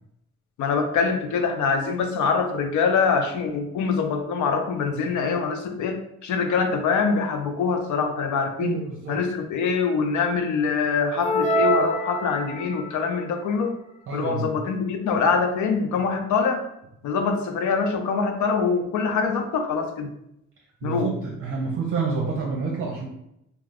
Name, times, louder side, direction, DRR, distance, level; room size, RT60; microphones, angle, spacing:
voice 1, 0.6-6.0 6.2-8.8 9.1-13.7 14.1-16.6 17.0-20.1 20.8-21.1, left 5 dB, 75° left, 5 dB, 0.6 m, -24 dB
voice 2, 8.6-9.2 14.1-14.5 15.9-16.0 20.8-23.1, right 4 dB, 45° right, -2 dB, 0.6 m, -28 dB
sound 1, 11.2-12.9, equal, 25° left, 0.4 m, -24 dB
2.3 x 2.3 x 3.3 m, 0.81 s
cardioid pair, 90°, 30 cm